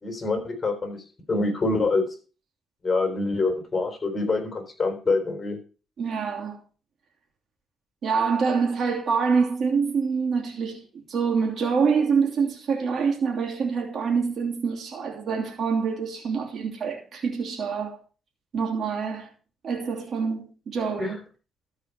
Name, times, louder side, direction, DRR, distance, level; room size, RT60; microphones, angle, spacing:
voice 1, 0.0-1.0 1.3-2.1 2.8-5.6 21.0-21.2, left 3 dB, 30° left, 3.7 m, -25 dB
voice 2, 6.0-6.6 8.0-18.0 18.5-19.3 19.6-21.2, right 5 dB, 55° right, 2.9 m, -26 dB
13.5 x 4.8 x 6.6 m
cardioid pair, 90°, 0 cm